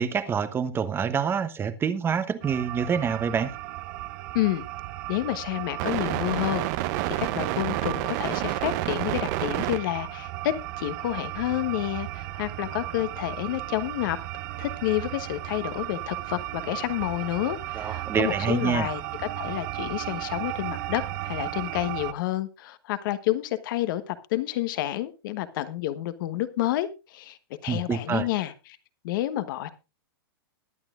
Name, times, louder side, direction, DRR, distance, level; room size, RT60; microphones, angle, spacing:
voice 1, 0.0-3.5 17.8-18.9 27.7-28.3, right 6 dB, 20° right, 1.0 m, -26 dB
sound 1, 2.4-22.1, right 16 dB, 50° right, 0.7 m, -32 dB
voice 2, 4.3-4.6 5.1-6.7 7.2-14.2 14.6-19.0 19.3-28.8 29.0-29.7, left 15 dB, 60° left, 1.2 m, -29 dB
20.5 x 8.9 x 2.5 m
hypercardioid pair, 130°, 12 cm